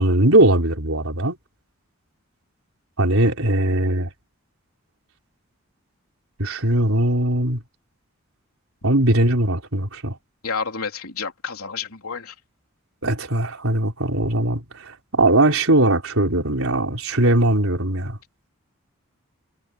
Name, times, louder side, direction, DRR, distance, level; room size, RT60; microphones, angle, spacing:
voice 1, 0.0-1.4 3.0-4.1 6.4-7.6 8.8-10.1 13.0-14.6 15.1-18.1, right 1 dB, 75° right, 4.1 m, -19 dB
voice 2, 10.4-12.3, left 5 dB, 85° left, 3.5 m, -30 dB
head